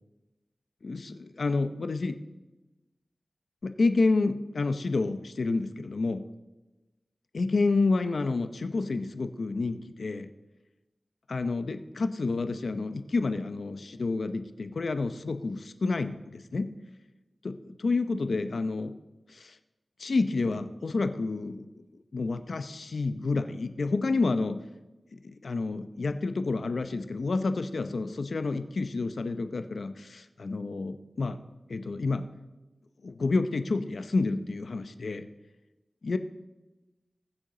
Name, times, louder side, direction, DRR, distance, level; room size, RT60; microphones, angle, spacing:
voice 1, 0.8-2.2 3.6-6.2 7.3-10.3 11.3-16.7 17.4-18.9 19.3-19.6 20.0-21.7 22.1-24.6 25.1-31.4 31.7-32.2 33.0-35.3 36.0-36.2, left 3 dB, 75° left, 9 dB, 0.7 m, -29 dB
21.0 x 7.2 x 3.9 m, 1.1 s
wide cardioid pair, 80°, 0 cm